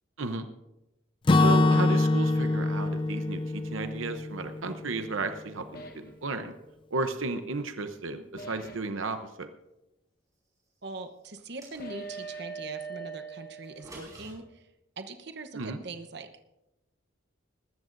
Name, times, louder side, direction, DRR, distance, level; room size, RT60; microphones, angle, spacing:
Acoustic guitar / Strum, 1.3-5.2, left 2 dB, 25° left, 0.4 m, -25 dB
voice 1, 1.4-6.5 6.9-9.5 15.5-15.8, right 3 dB, 80° right, 8 dB, 0.8 m, -33 dB
sound 1, 5.7-6.2 8.4-9.0 11.8-14.2, right 4 dB, 50° left, 1.2 m, -42 dB
voice 2, 10.8-14.7 15.0-16.3, right 3 dB, 55° right, 8 dB, 1.0 m, -42 dB
sound 2, 11.3-12.3 13.6-14.3, right 1 dB, 15° right, 5.2 m, -48 dB
20.0 x 14.0 x 2.6 m, 0.93 s
head